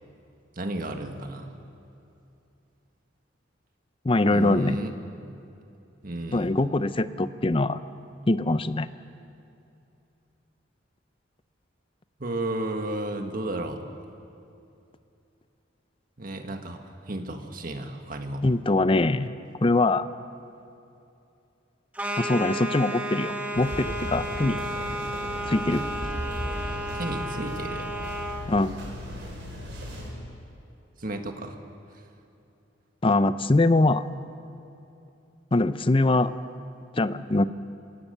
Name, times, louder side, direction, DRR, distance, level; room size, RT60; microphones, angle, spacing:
voice 1, 0.5-1.5 4.3-4.9 6.0-6.6 12.2-13.8 16.2-18.4 26.9-27.9 31.0-31.6, right 1 dB, 50° right, 5 dB, 1.6 m, -33 dB
voice 2, 4.0-4.8 6.3-7.8 8.3-8.9 18.4-19.3 19.6-20.1 22.2-24.6 25.5-25.8 28.5-28.7 33.0-34.0 35.5-36.3 36.9-37.4, left 2 dB, 30° left, 13 dB, 0.6 m, -23 dB
sound 1, 21.9-28.5, right 1 dB, 10° right, 1.4 m, -32 dB
sound 2, 23.5-30.1, equal, 65° right, 5.6 m, -36 dB
25.5 x 17.5 x 6.8 m, 2.7 s
head